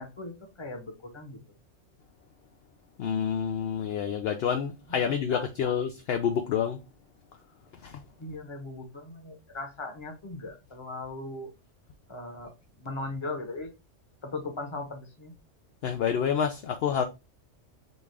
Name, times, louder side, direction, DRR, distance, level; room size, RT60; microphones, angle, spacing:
voice 1, 0.0-1.4 5.0-5.7 8.2-11.5 12.1-12.5 12.8-13.7 14.2-15.3, left 2 dB, 25° left, 0.9 m, -38 dB
voice 2, 3.0-6.8 7.8-8.0 15.8-17.0, left 7 dB, 65° left, 0.7 m, -28 dB
5.3 x 2.4 x 3.3 m
omnidirectional pair, 1.3 m